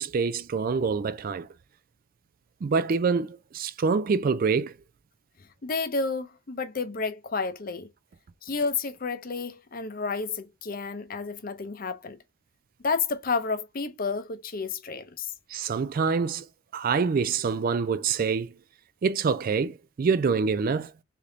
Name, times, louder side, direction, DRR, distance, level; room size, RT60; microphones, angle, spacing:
voice 1, 0.0-1.5 2.6-4.7 15.5-16.5 16.7-18.5 19.0-20.9, right 5 dB, 40° right, 0.3 m, -26 dB
voice 2, 5.6-7.9 8.4-12.2 12.8-15.3, left 4 dB, 40° left, 0.7 m, -31 dB
3.7 x 3.4 x 2.8 m
head